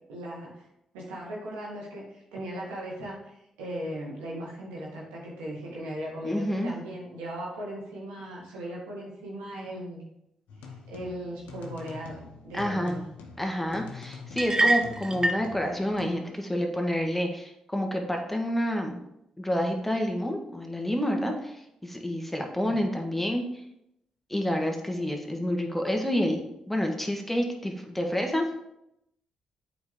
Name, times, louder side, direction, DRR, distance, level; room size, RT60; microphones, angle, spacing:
voice 1, 0.1-0.7 0.9-10.0 10.7-13.1 14.6-14.7 22.6-23.0, right 1 dB, 90° right, -4 dB, 1.9 m, -38 dB
voice 2, 6.2-6.7 12.5-13.0 13.4-19.0 19.4-23.4 24.3-28.5, equal, 10° left, 3 dB, 1.5 m, -29 dB
sound 1, 10.5-16.1, left 5 dB, 80° left, 1.0 m, -45 dB
sound 2, 14.4-15.5, right 2 dB, 25° right, 0.8 m, -25 dB
7.9 x 5.1 x 3.6 m, 0.81 s
hypercardioid pair, 45°, 2 cm